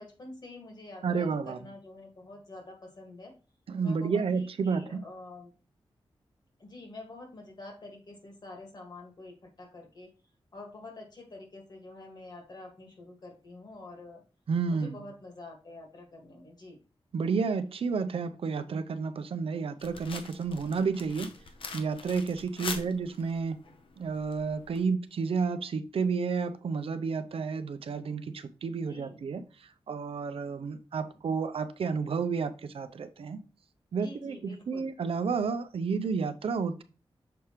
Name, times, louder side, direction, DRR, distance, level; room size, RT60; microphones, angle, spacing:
voice 1, 0.0-3.3 3.8-5.5 6.6-10.1 10.5-14.2 14.7-16.8 22.6-22.9 28.8-29.3 34.0-34.9, left 2 dB, 45° left, 1.7 m, -47 dB
voice 2, 1.0-1.6 3.7-5.0 14.5-15.0 17.1-21.3 21.7-23.6 24.0-29.4 29.9-33.4 33.9-36.8, right 5 dB, 75° right, 0.6 m, -31 dB
sound 1, 19.8-24.8, left 4 dB, 65° left, 0.8 m, -43 dB
6.9 x 4.9 x 3.0 m
wide cardioid pair, 175°, 10 cm